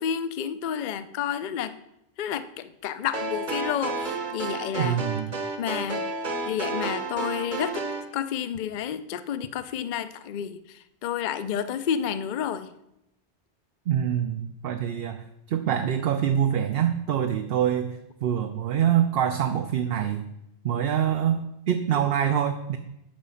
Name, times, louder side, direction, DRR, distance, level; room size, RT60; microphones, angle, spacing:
voice 1, 0.0-1.8 2.2-5.0 5.6-6.0 6.5-12.7, left 8 dB, 55° left, 12 dB, 0.6 m, -30 dB
sound 1, 3.1-8.1, right 3 dB, 45° right, 1.1 m, -31 dB
voice 2, 4.8-5.3 13.9-20.3 20.6-22.8, right 9 dB, 65° right, 7 dB, 0.8 m, -25 dB
8.7 x 6.1 x 5.7 m, 0.83 s
omnidirectional pair, 1.1 m